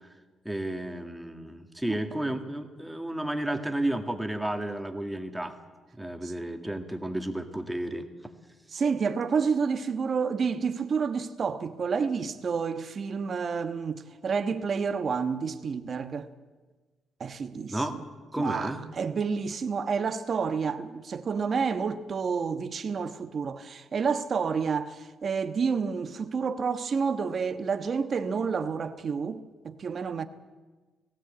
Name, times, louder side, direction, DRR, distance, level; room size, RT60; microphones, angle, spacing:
voice 1, 0.5-5.5 6.0-8.1 17.7-18.0 18.3-18.8, right 1 dB, 5° right, 2.1 m, -32 dB
voice 2, 8.7-16.3 17.2-18.0 18.4-30.2, right 5 dB, 45° right, 1.3 m, -29 dB
17.5 x 17.0 x 8.8 m
cardioid pair, 90°, 0 cm